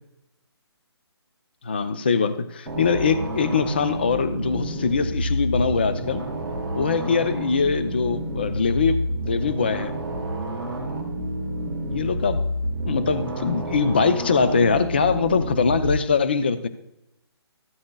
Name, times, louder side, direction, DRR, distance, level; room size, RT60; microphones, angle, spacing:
voice 1, 1.6-6.2 6.7-9.9 11.9-12.5 12.9-16.7, left 5 dB, 25° left, 11 dB, 0.3 m, -22 dB
sound 1, 2.7-15.9, equal, 5° left, 2.3 m, -29 dB
14.0 x 13.0 x 2.2 m, 0.85 s
hypercardioid pair, 170°, 14 cm